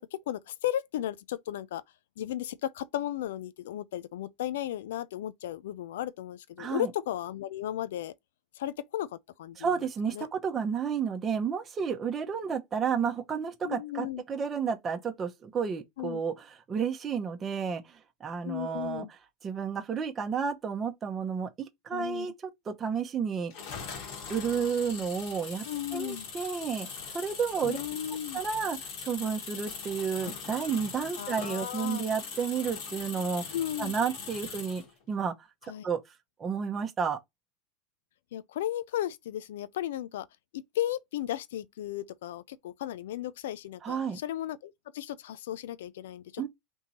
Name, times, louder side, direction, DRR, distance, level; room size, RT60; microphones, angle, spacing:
voice 1, 0.0-1.8 2.2-8.1 8.5-9.8 10.1-10.3 13.6-14.2 16.0-16.2 18.4-19.1 21.9-22.3 25.6-26.3 27.7-28.4 31.2-32.0 33.5-33.9 35.7-35.9 38.3-40.3 40.5-46.5, left 12 dB, 90° left, 0.3 m, -35 dB
voice 2, 6.6-6.9 9.6-19.1 19.4-23.5 24.3-25.6 25.9-27.8 28.3-33.4 33.8-35.3 35.6-36.0 36.4-37.2 43.8-44.2 46.4-46.5, right 6 dB, 25° right, 0.8 m, -31 dB
sound 1, 23.5-34.9, left 5 dB, 65° left, 1.7 m, -41 dB
3.6 x 2.9 x 4.1 m
supercardioid pair, 125°, 0 cm